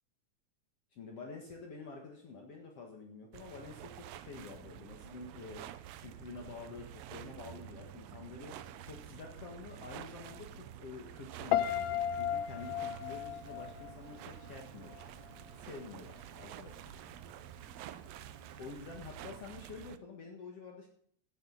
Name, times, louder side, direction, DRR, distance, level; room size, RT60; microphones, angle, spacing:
voice 1, 0.9-5.7 6.0-8.6 8.8-15.1 15.6-17.1 18.6-20.9, left 4 dB, 55° left, 1 dB, 2.4 m, -48 dB
sound 1, 3.3-20.0, right 12 dB, 80° right, 1.5 m, -49 dB
sound 2, 7.3-16.7 17.2-17.7, left 1 dB, 25° left, 3.8 m, -62 dB
Piano, 11.5-14.6 14.9-15.3, left 11 dB, 80° left, 1.6 m, -34 dB
15.0 x 9.2 x 4.0 m, 0.62 s
omnidirectional pair, 3.6 m